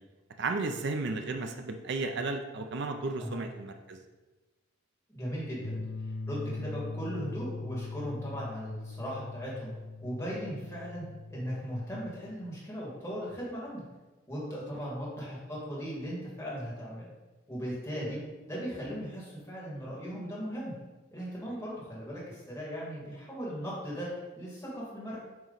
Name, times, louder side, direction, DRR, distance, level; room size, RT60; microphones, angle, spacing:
voice 1, 0.4-4.0, right 3 dB, 55° right, 5 dB, 0.4 m, -33 dB
voice 2, 5.1-9.7 10.0-11.0 11.3-13.8 14.3-17.1 17.5-18.2 18.5-20.7 21.1-25.2, equal, 15° left, -7 dB, 1.9 m, -38 dB
sound 1, 5.6-12.3, left 3 dB, 90° left, 0.8 m, -40 dB
9.0 x 3.0 x 3.9 m, 1.2 s
head